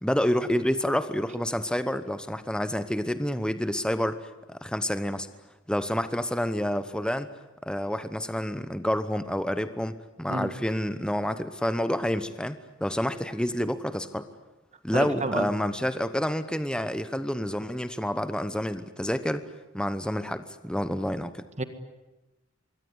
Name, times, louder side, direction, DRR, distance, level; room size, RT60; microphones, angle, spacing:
voice 1, 0.0-5.3 5.7-7.3 7.6-14.3 14.8-19.4 19.7-21.5, equal, 5° left, 11 dB, 1.0 m, -28 dB
voice 2, 14.9-15.4 21.6-21.7, right 2 dB, 35° right, 9 dB, 1.7 m, -29 dB
25.5 x 23.5 x 9.7 m, 1.1 s
head